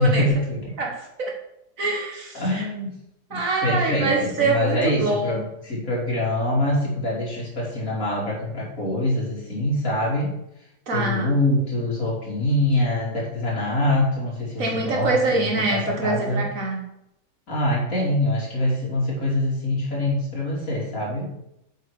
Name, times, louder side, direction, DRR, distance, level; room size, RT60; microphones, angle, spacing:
voice 1, 0.0-0.8 2.3-3.0 3.3-10.3 10.9-16.4 17.5-21.3, left 1 dB, 55° left, -4 dB, 3.1 m, -24 dB
voice 2, 0.8-1.4 1.8-2.6 3.3-5.4 10.9-11.3 14.6-16.8, right 3 dB, 55° right, 0 dB, 1.6 m, -24 dB
8.0 x 5.7 x 4.6 m, 0.82 s
omnidirectional pair, 1.8 m